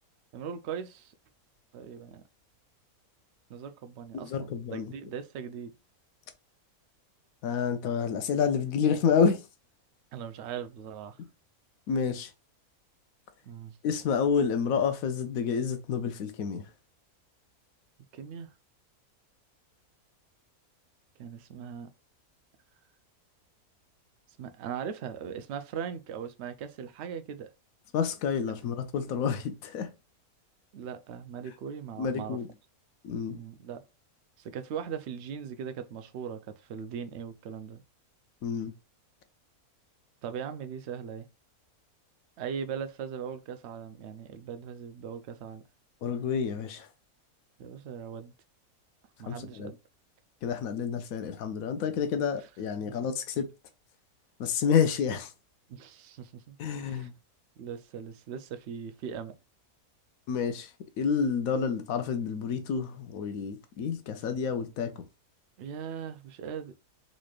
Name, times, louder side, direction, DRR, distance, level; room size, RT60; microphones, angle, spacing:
voice 1, 0.3-1.1 1.7-2.2 3.5-5.7 10.1-11.2 13.4-13.8 18.1-18.5 21.2-21.9 24.4-27.5 30.7-32.4 33.3-33.8 34.4-37.8 40.2-41.3 42.4-45.6 47.6-48.3 49.2-49.8 52.9-53.0 55.7-57.1 57.6-59.3 65.6-66.8, right 7 dB, 65° right, 0.7 m, -39 dB
voice 2, 4.1-4.9 7.4-9.4 11.9-12.3 13.8-16.6 27.9-29.9 32.0-32.5 33.0-33.4 38.4-38.7 46.0-46.9 49.3-49.7 50.4-53.5 54.4-55.3 56.6-57.1 60.3-60.7 61.0-64.9, left 6 dB, 75° left, 1.0 m, -29 dB
4.1 x 3.1 x 2.3 m
omnidirectional pair, 1.5 m